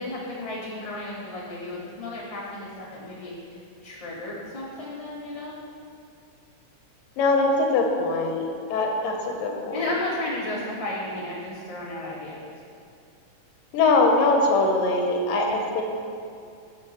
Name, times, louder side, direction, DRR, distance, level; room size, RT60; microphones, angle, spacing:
voice 1, 0.0-5.5 9.7-12.5, left 2 dB, 15° left, -10 dB, 2.4 m, -33 dB
voice 2, 7.2-9.8 13.7-15.8, left 3 dB, 85° left, 1 dB, 2.5 m, -22 dB
16.5 x 6.7 x 3.0 m, 2.4 s
omnidirectional pair, 3.8 m